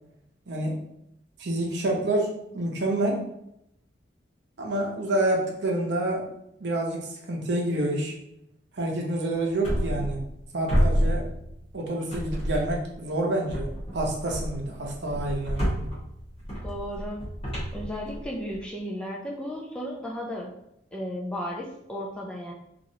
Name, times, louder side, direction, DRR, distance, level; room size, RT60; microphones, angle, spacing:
voice 1, 0.5-0.8 1.4-3.2 4.6-6.2 6.6-8.1 8.7-10.2 10.5-11.3 11.7-15.6, right 1 dB, 65° right, -1 dB, 0.7 m, -28 dB
sound 1, 9.6-10.4 10.7-11.8 12.1-12.9 13.5-18.6, equal, 30° left, 1.1 m, -29 dB
voice 2, 16.6-17.2 17.7-20.5 20.9-22.5, equal, 5° left, -3 dB, 0.3 m, -34 dB
3.0 x 2.5 x 2.7 m, 0.79 s
head